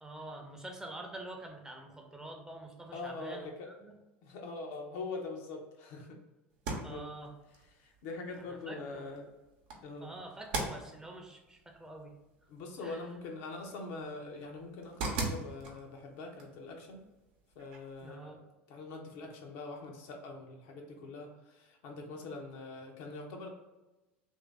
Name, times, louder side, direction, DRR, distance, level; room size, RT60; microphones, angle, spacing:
voice 1, 0.0-3.9 6.8-7.3 8.7-9.2 10.0-12.1 12.8-13.0 18.0-18.4, right 2 dB, 10° right, 2 dB, 0.7 m, -46 dB
voice 2, 2.9-3.7 4.2-6.2 6.8-7.1 7.8-9.3 9.8-10.1 12.5-17.0 17.6-18.4 18.7-23.5, left 3 dB, 60° left, 2 dB, 0.6 m, -43 dB
sound 1, 6.5-18.1, right 3 dB, 65° right, 0.8 m, -43 dB
3.0 x 2.6 x 3.4 m, 1.1 s
hypercardioid pair, 75°, 6 cm